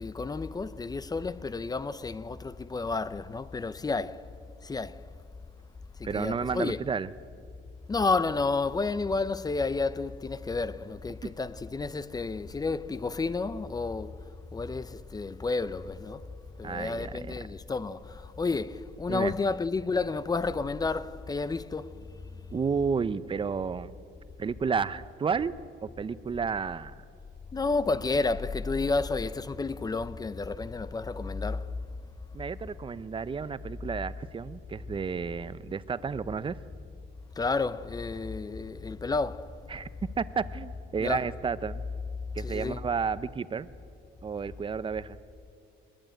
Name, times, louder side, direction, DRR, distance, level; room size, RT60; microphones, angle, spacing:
voice 1, 0.0-4.3 4.6-5.1 6.0-6.8 7.9-14.2 14.5-16.2 16.6-22.1 27.5-31.8 37.4-39.5 41.0-41.2 42.4-42.8, left 3 dB, 20° left, 0.6 m, -31 dB
voice 2, 6.0-7.1 16.6-17.3 19.1-19.3 22.5-23.9 24.4-25.5 25.8-27.0 32.3-36.6 39.7-39.9 40.2-41.8 42.3-43.7 44.2-45.2, right 5 dB, 25° right, 0.6 m, -31 dB
21.5 x 21.0 x 9.0 m
cardioid pair, 140°, 21 cm